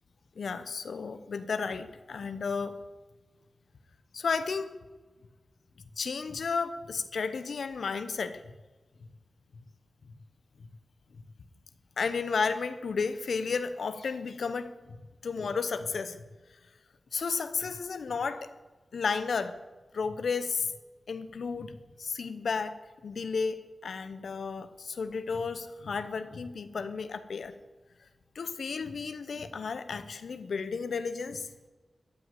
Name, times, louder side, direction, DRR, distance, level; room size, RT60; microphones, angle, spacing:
voice 1, 0.4-2.8 4.1-4.7 6.0-8.4 12.0-14.7 15.2-16.2 17.1-18.5 18.9-19.6 19.9-20.7 21.1-22.8 23.0-27.5 28.3-31.5, left 5 dB, 85° left, 11 dB, 0.8 m, -33 dB
14.0 x 6.3 x 9.2 m, 1.3 s
wide cardioid pair, 70°, 0 cm